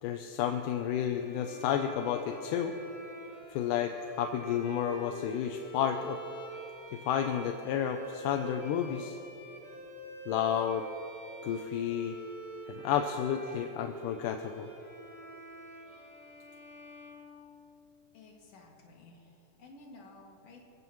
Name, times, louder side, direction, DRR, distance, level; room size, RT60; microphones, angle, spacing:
voice 1, 0.0-2.8 3.5-6.2 6.9-9.2 10.3-10.9 11.4-12.2 12.7-14.7, left 9 dB, 80° left, 5 dB, 2.2 m, -31 dB
sound 1, 1.1-18.0, right 1 dB, 20° right, 5.0 m, -47 dB
voice 2, 18.1-20.6, left 2 dB, 50° left, -2 dB, 3.2 m, -54 dB
28.0 x 15.5 x 3.1 m, 3.0 s
omnidirectional pair, 3.7 m